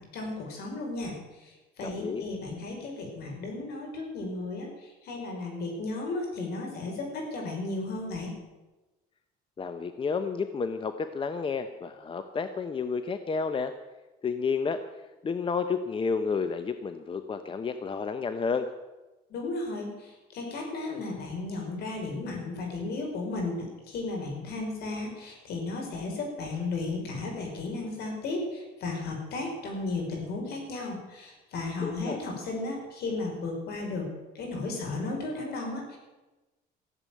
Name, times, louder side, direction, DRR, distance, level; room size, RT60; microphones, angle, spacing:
voice 1, 0.0-8.4 19.3-34.1 34.3-36.0, left 3 dB, 70° left, 1 dB, 5.4 m, -34 dB
voice 2, 1.8-2.3 9.6-13.7 14.2-14.8 15.2-18.7 31.8-32.2, left 5 dB, 30° left, 10 dB, 0.9 m, -31 dB
15.0 x 8.1 x 9.2 m, 1.1 s
cardioid pair, 110°, 17 cm